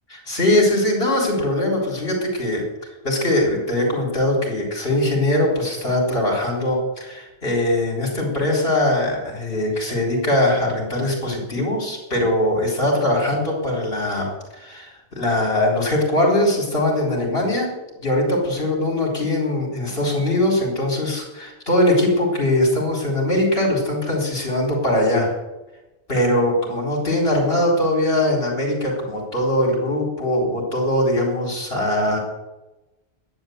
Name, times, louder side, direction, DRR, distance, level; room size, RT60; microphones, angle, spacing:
voice 1, 0.1-2.6 3.0-17.7 18.0-25.3 26.1-32.2, left 1 dB, 55° left, -2 dB, 4.4 m, -21 dB
12.5 x 10.5 x 8.0 m, 1.0 s
omnidirectional pair, 1.2 m